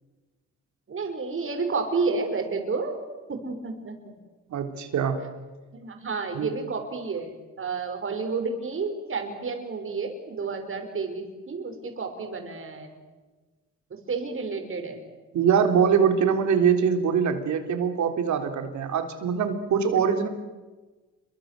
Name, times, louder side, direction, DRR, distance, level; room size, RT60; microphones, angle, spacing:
voice 1, 0.9-2.9 3.3-4.2 5.7-12.9 13.9-15.0 20.0-20.1, right 4 dB, 45° right, 5 dB, 6.0 m, -31 dB
voice 2, 4.5-5.2 6.3-6.5 15.3-20.3, right 7 dB, 70° right, 6 dB, 3.6 m, -23 dB
29.0 x 24.0 x 7.8 m, 1.3 s
cardioid pair, 90°, 30 cm